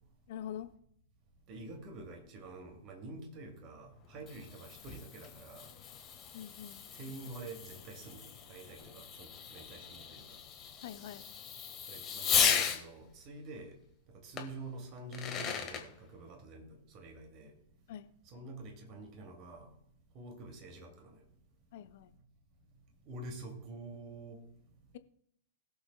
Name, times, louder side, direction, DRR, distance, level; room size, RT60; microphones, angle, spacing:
voice 1, 0.3-0.7 6.3-6.8 10.8-11.3 17.9-18.1 21.7-22.1, left 10 dB, 50° left, 0.7 m, -44 dB
voice 2, 1.5-5.7 6.9-10.2 11.9-13.8 14.1-17.5 18.3-19.7 20.1-21.2 23.1-24.4, right 2 dB, 35° right, 2.4 m, -47 dB
Fireworks, 4.0-12.8 14.4-14.5 15.0-15.8, left 7 dB, 25° left, 1.4 m, -36 dB
21.5 x 7.2 x 2.2 m
figure-of-eight pair, 100°, 0 cm